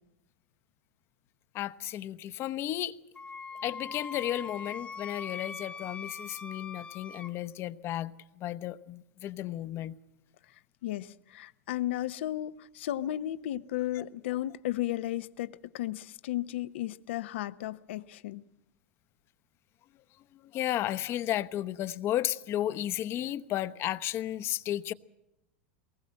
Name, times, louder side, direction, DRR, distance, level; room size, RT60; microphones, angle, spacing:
voice 1, 1.5-3.0 3.6-8.1 8.4-10.0 13.9-14.1 20.5-24.9, left 13 dB, 40° left, 0.9 m, -33 dB
Wind instrument woodwind instrument, 3.1-7.3, left 5 dB, 15° left, 1.1 m, -42 dB
voice 2, 10.8-18.4, left 14 dB, 75° left, 0.9 m, -34 dB
23.0 x 20.0 x 7.7 m
hypercardioid pair, 115°, 6 cm